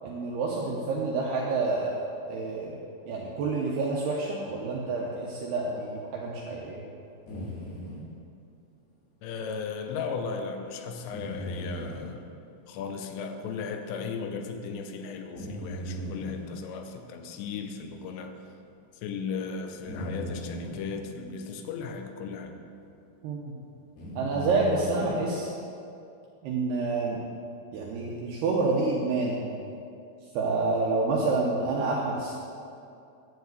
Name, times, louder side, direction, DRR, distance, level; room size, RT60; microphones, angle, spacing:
voice 1, 0.0-2.0 2.3-2.7 3.1-6.8 23.2-23.5 24.2-25.5 26.4-27.2 27.7-29.4 30.3-32.3, right 3 dB, 85° right, -3 dB, 2.3 m, -28 dB
sound 1, 7.3-8.0 9.9-10.0 11.1-12.1 12.8-12.9 13.5-13.6 15.4-16.5 17.5-17.6 18.1-18.2 19.8-20.8 21.8-21.9 22.8-23.0 24.0-25.2, equal, 55° left, 4.4 m, -37 dB
voice 2, 9.2-12.2 12.7-18.4 19.0-22.6, left 5 dB, 80° left, 6 dB, 3.2 m, -36 dB
11.0 x 4.8 x 7.9 m, 2.6 s
omnidirectional pair, 5.9 m